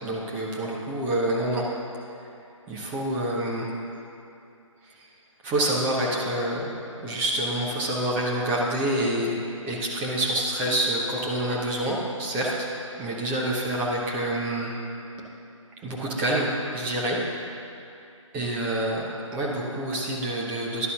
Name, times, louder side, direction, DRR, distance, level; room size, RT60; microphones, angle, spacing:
voice 1, 0.0-1.7 2.7-3.7 4.8-5.1 5.4-9.4 9.6-12.7 13.0-14.7 15.8-17.2 18.3-20.9, right 1 dB, 10° right, -4 dB, 0.7 m, -27 dB
11.0 x 4.1 x 6.4 m, 2.7 s
figure-of-eight pair, 155°, 17 cm